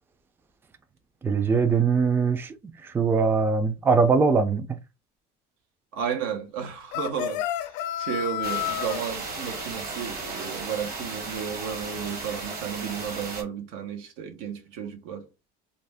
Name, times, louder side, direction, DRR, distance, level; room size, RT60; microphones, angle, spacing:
voice 1, 1.2-2.5 2.8-4.7, right 5 dB, 10° right, 0.3 m, -21 dB
voice 2, 5.9-15.3, right 8 dB, 90° right, 0.8 m, -33 dB
sound 1, 6.9-9.0, left 13 dB, 60° left, 0.4 m, -30 dB
sound 2, 8.4-13.4, right 3 dB, 45° right, 1.2 m, -35 dB
2.5 x 2.1 x 3.3 m
cardioid pair, 120°, 20 cm